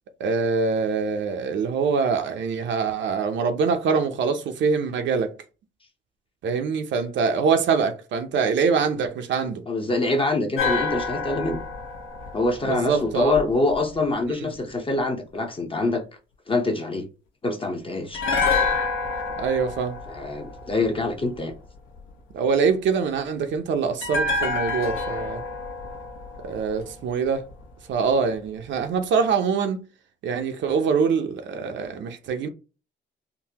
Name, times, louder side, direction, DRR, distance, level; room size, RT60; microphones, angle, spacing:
voice 1, 0.2-5.3 6.4-9.6 12.7-13.4 14.4-14.5 19.4-19.9 22.3-25.4 26.4-27.4 27.9-29.8 30.2-32.5, right 5 dB, 70° right, 0.5 m, -24 dB
voice 2, 9.7-11.6 12.3-16.0 16.5-17.1 17.4-18.2 20.1-21.5, left 2 dB, 25° left, 0.6 m, -25 dB
sound 1, 10.6-13.7 18.1-21.4 24.0-27.2 27.5-27.6, left 4 dB, 85° left, 0.9 m, -28 dB
3.7 x 2.1 x 2.8 m
cardioid pair, 90°, 20 cm